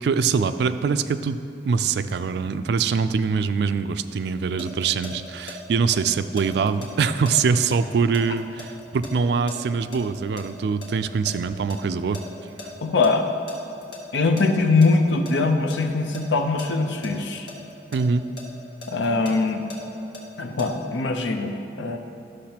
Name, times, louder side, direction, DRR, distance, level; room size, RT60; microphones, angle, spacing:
voice 1, 0.0-12.2 17.9-18.2, right 5 dB, 65° right, 11 dB, 0.3 m, -23 dB
sound 1, 4.4-5.6 5.9-10.5 10.8-12.7 13.0-13.1 13.5-14.9 15.3-15.8 16.1-18.0 18.4-20.7, left 2 dB, 70° left, 1.2 m, -39 dB
voice 2, 12.8-13.3 14.1-17.5 18.9-19.6 20.4-22.0, left 3 dB, 90° left, 5 dB, 0.6 m, -22 dB
12.0 x 6.6 x 2.9 m, 2.5 s
head